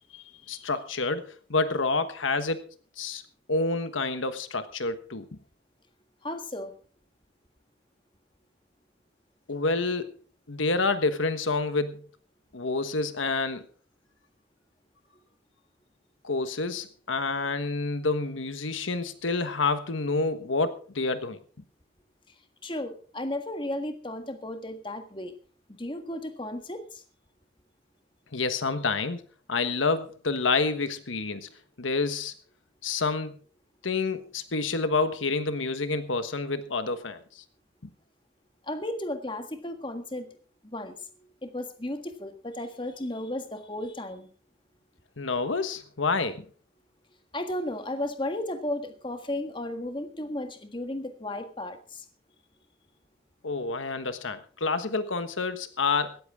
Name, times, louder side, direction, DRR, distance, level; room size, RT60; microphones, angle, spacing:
voice 1, 0.1-2.7 3.0-3.2 3.5-5.4 9.5-10.1 10.5-12.0 12.5-13.6 16.2-21.4 28.3-29.2 29.5-31.5 31.8-32.3 32.8-33.4 33.8-37.4 45.2-46.5 53.4-56.2, left 3 dB, 90° left, 10 dB, 1.3 m, -28 dB
voice 2, 6.2-6.7 22.6-25.4 25.8-26.8 38.7-40.3 40.6-40.9 41.4-44.3 47.3-52.0, left 1 dB, 25° left, 7 dB, 1.6 m, -34 dB
17.5 x 14.0 x 3.7 m, 0.40 s
head